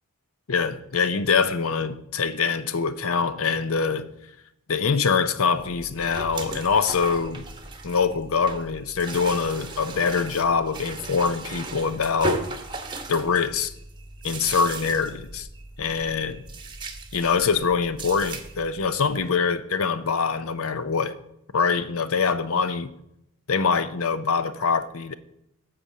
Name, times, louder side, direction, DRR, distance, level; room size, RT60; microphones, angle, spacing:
voice 1, 0.5-4.1 4.7-7.4 7.8-12.4 13.1-13.7 14.2-15.5 15.8-16.4 17.1-21.1 21.5-22.9 23.5-25.1, left 5 dB, 75° left, 0.6 m, -24 dB
sound 1, 5.6-19.3, right 2 dB, 20° right, 0.9 m, -37 dB
8.3 x 5.2 x 7.3 m
head